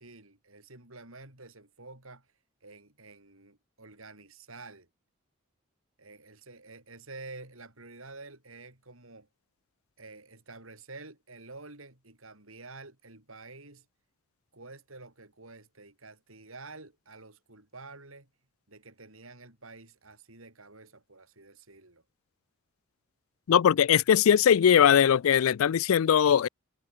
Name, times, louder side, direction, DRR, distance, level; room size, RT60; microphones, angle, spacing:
voice 1, 0.0-2.3 2.6-4.9 6.0-9.3 10.0-13.9 14.5-18.3 18.7-22.0, right 3 dB, 80° right, 6.6 m, -49 dB
voice 2, 23.5-26.5, left 8 dB, 85° left, 0.4 m, -20 dB
head